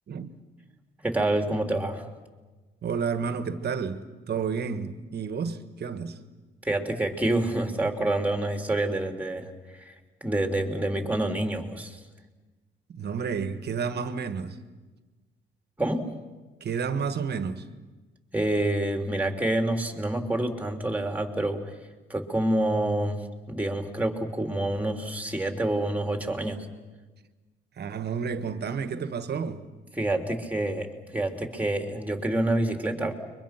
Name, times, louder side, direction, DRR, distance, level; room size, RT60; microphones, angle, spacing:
voice 1, 1.0-2.1 6.6-9.9 10.2-12.0 15.8-16.1 18.3-21.6 22.1-26.7 30.0-30.9 31.1-33.1, right 1 dB, 5° right, 3.3 m, -27 dB
voice 2, 2.8-6.2 12.9-14.6 16.6-17.6 27.8-29.7, right 6 dB, 55° right, 1.7 m, -31 dB
30.0 x 24.0 x 6.0 m
cardioid pair, 90°, 20 cm